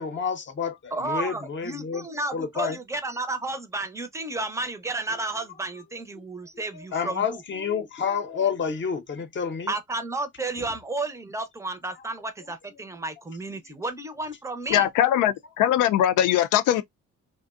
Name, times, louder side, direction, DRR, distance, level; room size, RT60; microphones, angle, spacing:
voice 1, 0.0-2.0 2.3-2.8 6.7-9.7 10.6-10.7 14.7-14.9, left 6 dB, 40° left, 0.7 m, -29 dB
voice 2, 0.9-7.4 9.7-14.9, right 2 dB, 10° right, 0.5 m, -32 dB
voice 3, 14.7-16.8, left 11 dB, 85° left, 0.5 m, -21 dB
2.5 x 2.1 x 2.3 m
cardioid pair, 90°, 30 cm